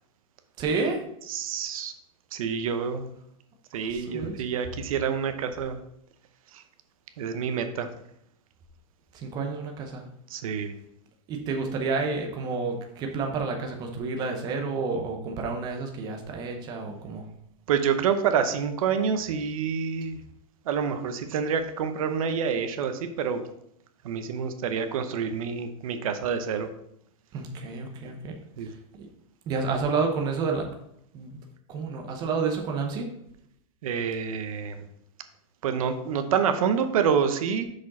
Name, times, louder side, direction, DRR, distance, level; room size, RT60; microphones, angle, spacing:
voice 1, 0.6-1.0 3.9-4.3 9.1-10.0 11.3-17.3 27.3-28.3 29.0-29.1 29.5-30.7 31.1-31.4 31.7-33.1, right 4 dB, 20° right, 3 dB, 0.8 m, -30 dB
voice 2, 1.3-1.9 2.3-3.1 3.7-5.8 6.5-6.6 7.2-8.0 10.3-10.7 17.7-20.2 20.6-23.4 24.0-26.7 28.6-28.7 33.8-34.9 35.6-37.6, right 7 dB, 75° right, 8 dB, 0.8 m, -27 dB
6.1 x 5.1 x 4.1 m, 0.73 s
supercardioid pair, 175°, 18 cm